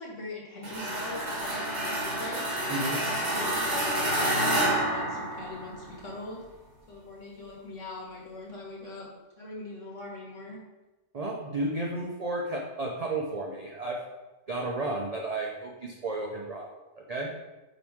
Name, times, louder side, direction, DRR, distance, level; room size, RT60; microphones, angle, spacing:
voice 1, 0.0-2.6 3.0-6.4 6.9-9.1 9.4-10.6, left 2 dB, 55° left, -3 dB, 1.8 m, -41 dB
sound 1, 0.6-5.9, right 1 dB, 35° right, 1.1 m, -29 dB
voice 2, 2.7-3.0 11.1-14.0 14.5-16.7 17.0-17.3, right 2 dB, 55° right, -1 dB, 0.4 m, -32 dB
8.9 x 3.0 x 3.6 m, 1.1 s
omnidirectional pair, 1.6 m